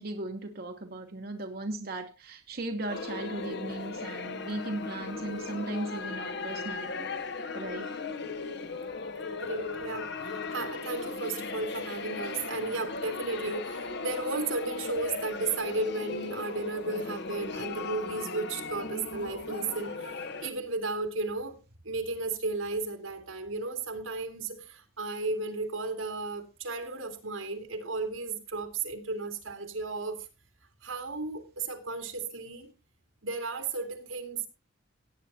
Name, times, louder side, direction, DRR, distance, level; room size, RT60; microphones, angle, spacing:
voice 1, 0.0-7.1 7.5-7.9, right 2 dB, 50° right, 1.1 m, -37 dB
sound 1, 2.9-20.5, left 4 dB, 60° left, 1.1 m, -37 dB
voice 2, 9.4-21.6 21.8-30.2 30.8-32.7 33.2-34.5, right 3 dB, 85° right, 2.5 m, -34 dB
17.0 x 9.0 x 2.8 m
head